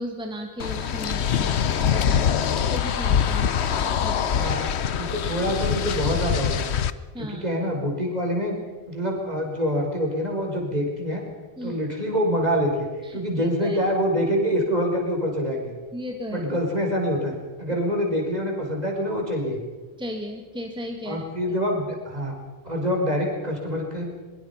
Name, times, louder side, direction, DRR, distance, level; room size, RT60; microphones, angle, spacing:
voice 1, 0.0-4.5 7.1-7.5 11.6-11.8 13.0-13.8 15.9-16.5 20.0-21.6, equal, 5° right, 2 dB, 1.9 m, -36 dB
sound 1, 0.6-6.9, left 8 dB, 90° left, 1.1 m, -24 dB
voice 2, 4.9-6.7 7.2-8.6 8.9-11.2 11.6-12.9 13.1-15.7 16.3-19.6 21.1-22.3 22.6-24.2, equal, 40° right, 0 dB, 5.4 m, -26 dB
23.5 x 23.0 x 5.9 m, 1.3 s
omnidirectional pair, 1.1 m